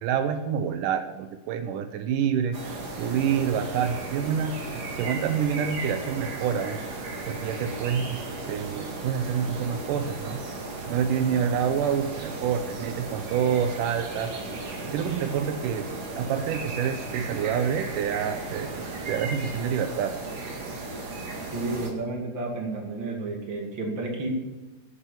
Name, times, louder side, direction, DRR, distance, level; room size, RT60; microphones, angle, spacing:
voice 1, 0.0-8.2 8.5-10.4 10.9-14.3 14.8-15.9 16.1-20.1, right 8 dB, 85° right, 8 dB, 2.3 m, -27 dB
sound 1, 2.5-21.9, right 2 dB, 55° right, 3.1 m, -35 dB
voice 2, 21.5-24.3, right 2 dB, 35° right, 0 dB, 3.0 m, -31 dB
11.5 x 9.0 x 7.2 m, 1.1 s
omnidirectional pair, 3.7 m